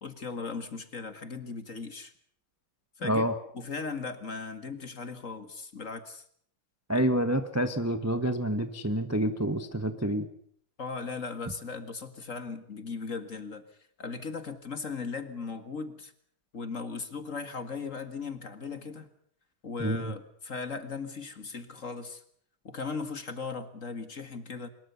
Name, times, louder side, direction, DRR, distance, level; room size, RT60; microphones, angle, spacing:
voice 1, 0.0-2.1 3.0-3.3 3.5-6.2 6.9-7.1 10.8-13.6 14.0-16.1 16.5-19.1 19.6-22.2 22.6-24.7, left 4 dB, 40° left, 10 dB, 2.1 m, -38 dB
voice 2, 3.0-3.3 6.9-10.3 19.8-20.1, right 1 dB, 10° right, 9 dB, 1.1 m, -28 dB
24.5 x 21.5 x 7.0 m, 0.63 s
omnidirectional pair, 2.4 m